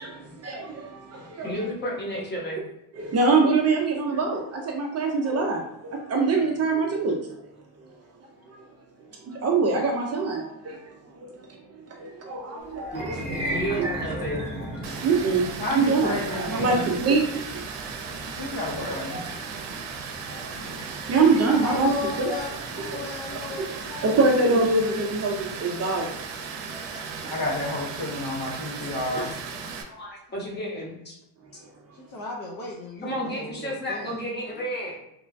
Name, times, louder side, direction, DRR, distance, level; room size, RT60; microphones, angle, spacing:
voice 1, 0.0-1.5 2.9-7.3 8.5-8.6 9.2-13.5 14.8-18.5 19.1-19.6 20.3-21.9 22.2-22.4 22.9-23.0 23.6-23.7 24.0-26.2 26.9-27.3 31.6-31.7, right 3 dB, 35° right, 1 dB, 0.4 m, -25 dB
voice 2, 1.4-2.7 12.9-14.5 14.8-15.0 26.7-26.9 29.1-29.2 29.9-31.1 33.0-35.0, equal, 25° left, -3 dB, 0.8 m, -32 dB
sound 1, 12.8-23.2, right 1 dB, 15° right, 0.7 m, -37 dB
Water, 14.8-29.8, right 5 dB, 85° right, 0.6 m, -36 dB
voice 3, 15.6-17.0 18.3-19.2 27.3-29.3, left 1 dB, 75° left, -2 dB, 1.0 m, -30 dB
voice 4, 21.6-24.2 29.1-29.3 31.9-34.2, left 4 dB, 50° left, -2 dB, 0.5 m, -36 dB
3.0 x 2.2 x 2.5 m, 0.81 s
cardioid pair, 135°, 44 cm